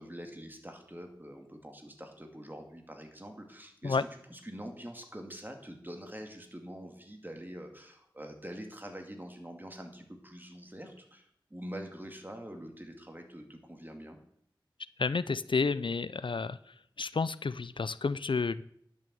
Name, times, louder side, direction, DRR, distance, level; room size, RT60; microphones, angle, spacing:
voice 1, 0.0-14.2, equal, 20° right, 4 dB, 2.2 m, -45 dB
voice 2, 15.0-16.6 17.0-18.6, left 4 dB, 70° left, 17 dB, 0.4 m, -30 dB
10.5 x 6.2 x 7.7 m, 0.67 s
wide cardioid pair, 45°, 9 cm